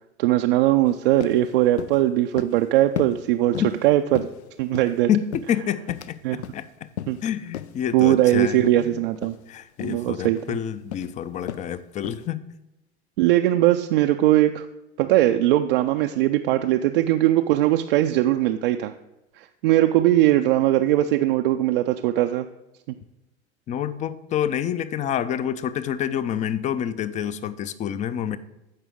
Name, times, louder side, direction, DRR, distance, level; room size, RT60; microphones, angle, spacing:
voice 1, 0.2-3.6 3.8-4.3 4.6-5.1 6.2-6.4 7.1-7.2 7.9-9.3 9.8-10.6 13.2-14.7 15.0-18.9 19.4-22.5, right 14 dB, 55° right, 6 dB, 0.5 m, -20 dB
sound 1, 0.9-1.0 1.2-1.4 1.8-2.0 2.4-2.6 3.0-3.2 3.5-3.8 4.1-5.0 5.3-6.2 6.4-6.6 7.0-7.2 7.5-7.7 8.1-8.3 8.6-8.8 9.2-9.4 9.8-10.0 10.4-10.6 10.9-11.1 11.5-11.7 12.0-12.3, left 10 dB, 75° left, 0.5 m, -34 dB
voice 2, 5.1-6.7 7.2-9.0 9.5-12.4 23.7-28.4, left 9 dB, 20° left, 15 dB, 0.4 m, -28 dB
14.5 x 5.1 x 3.6 m, 0.95 s
figure-of-eight pair, 85°, 34 cm